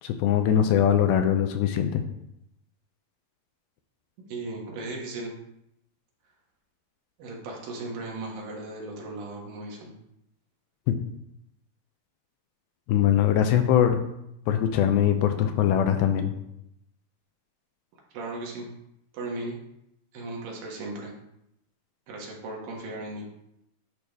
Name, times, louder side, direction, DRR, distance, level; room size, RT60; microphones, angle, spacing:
voice 1, 0.0-2.0 10.9-11.0 12.9-14.0 14.5-16.3, left 9 dB, 80° left, 7 dB, 2.4 m, -22 dB
voice 2, 4.3-5.3 7.2-9.9 18.1-18.7 19.1-19.6 20.1-21.1 22.1-23.2, right 2 dB, 70° right, -1 dB, 3.0 m, -36 dB
11.0 x 4.8 x 3.5 m, 0.80 s
omnidirectional pair, 4.3 m